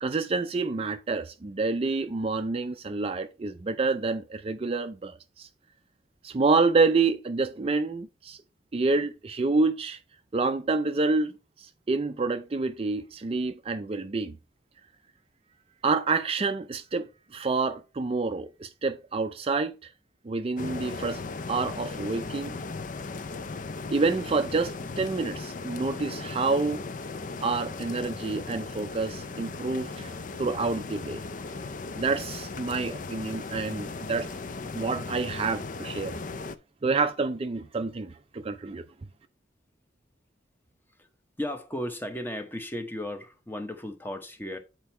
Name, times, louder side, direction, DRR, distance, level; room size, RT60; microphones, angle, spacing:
voice 1, 0.0-5.5 6.2-8.4 8.7-10.0 10.3-11.3 11.6-14.4 15.8-19.9 20.2-21.2 21.5-22.5 23.9-26.8 27.4-31.5 31.9-34.3 34.7-36.2 36.8-38.8, right 3 dB, 30° right, 0.4 m, -28 dB
sound 1, 20.6-36.6, left 3 dB, 45° left, 0.5 m, -37 dB
voice 2, 41.4-44.6, left 1 dB, 10° left, 0.9 m, -35 dB
7.6 x 4.5 x 4.3 m
head